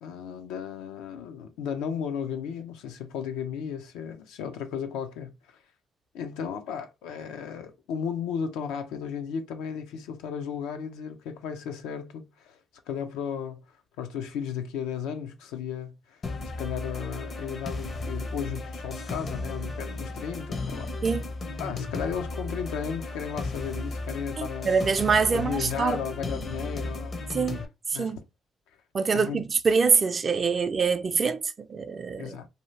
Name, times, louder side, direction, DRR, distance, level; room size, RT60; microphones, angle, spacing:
voice 1, 0.0-5.6 6.1-12.6 12.9-13.6 14.0-16.2 16.6-21.1 21.6-24.8 25.3-27.2 27.9-28.2 29.1-29.4 32.2-32.5, left 7 dB, 90° left, 0.5 m, -34 dB
sound 1, 16.2-27.6, left 2 dB, 50° left, 0.6 m, -35 dB
voice 2, 24.4-26.0 27.3-27.6 28.0-28.2 28.9-32.4, right 5 dB, 45° right, 0.4 m, -25 dB
2.7 x 2.3 x 3.0 m
supercardioid pair, 60°, 0 cm